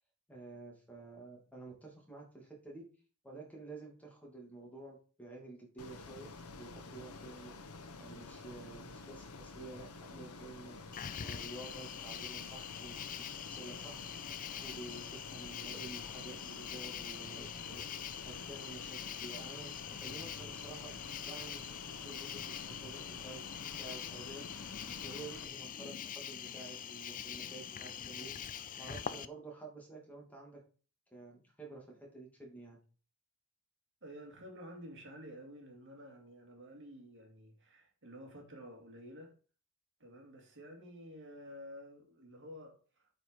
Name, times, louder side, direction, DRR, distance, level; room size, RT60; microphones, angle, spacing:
voice 1, 0.3-2.8 3.2-7.5 8.0-10.8 11.2-14.0 14.6-17.8 18.5-23.4 23.8-24.4 25.0-28.4 28.8-30.6 31.1-32.8, right 2 dB, 5° left, 2.6 m, -50 dB
Ocean, 5.8-25.4, left 3 dB, 75° left, 1.1 m, -50 dB
Cricket, 10.9-29.3, left 9 dB, 35° left, 0.5 m, -44 dB
voice 2, 34.0-39.4 40.0-43.1, equal, 55° right, 2.5 m, -51 dB
8.9 x 5.0 x 4.8 m
head